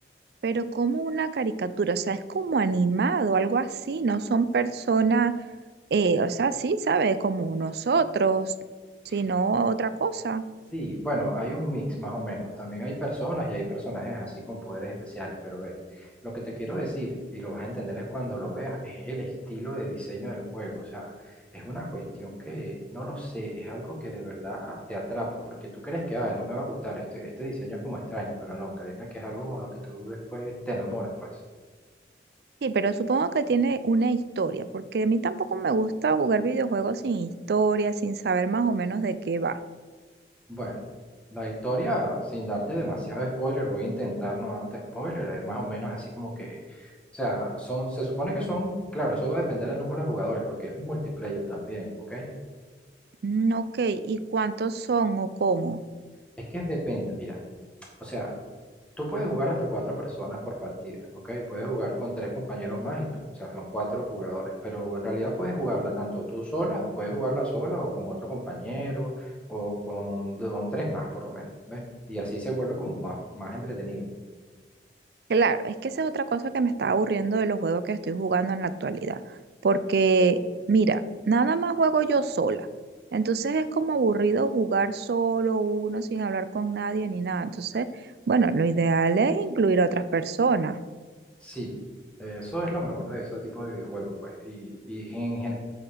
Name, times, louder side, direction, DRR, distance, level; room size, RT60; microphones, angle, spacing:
voice 1, 0.4-5.4 5.9-8.5 9.1-10.4 32.6-39.6 53.2-55.8 75.3-79.4 79.6-80.4 80.7-82.7 83.1-87.9 88.3-90.8, right 4 dB, 60° right, 13 dB, 0.4 m, -25 dB
voice 2, 10.7-31.3 40.5-40.9 41.3-52.3 56.4-57.4 58.0-58.3 59.0-63.1 63.4-71.8 72.1-74.1 91.4-91.7 92.2-95.5, equal, 5° left, -2 dB, 1.7 m, -32 dB
7.7 x 4.8 x 5.5 m, 1.5 s
head